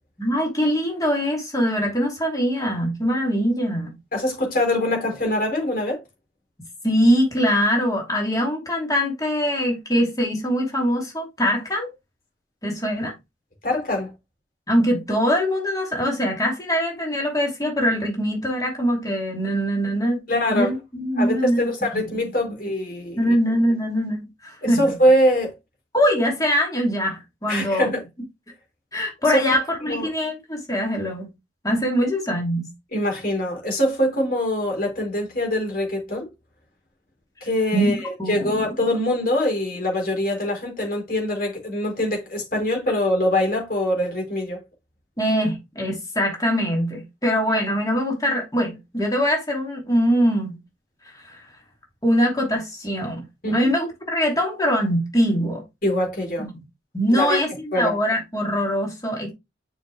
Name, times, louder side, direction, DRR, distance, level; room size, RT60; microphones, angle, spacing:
voice 1, 0.2-3.9 6.8-11.9 12.6-13.1 14.7-20.2 20.5-21.7 23.2-24.9 25.9-27.9 28.9-31.3 31.6-32.7 37.7-37.9 38.2-38.7 45.2-50.6 51.3-51.4 52.0-55.6 56.4-56.5 56.9-59.3, equal, 20° left, 2.8 m, -23 dB
voice 2, 4.1-6.0 13.6-14.1 20.3-20.7 21.2-23.3 24.6-25.5 27.5-28.0 29.3-29.5 29.8-30.1 32.9-36.3 37.4-44.6 53.4-53.7 55.8-56.5 57.1-57.4 57.7-57.9, left 1 dB, 50° left, 4.2 m, -23 dB
7.0 x 5.9 x 3.4 m
head